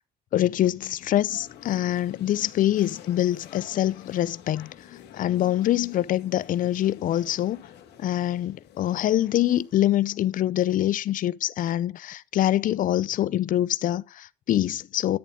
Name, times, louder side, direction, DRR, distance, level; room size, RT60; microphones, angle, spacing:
voice 1, 0.3-4.7 5.2-7.6 8.0-15.2, left 12 dB, 55° left, 0.5 m, -25 dB
sound 1, 0.8-10.8, left 10 dB, 80° left, 2.0 m, -48 dB
11.0 x 7.1 x 5.0 m
cardioid pair, 110°, 17 cm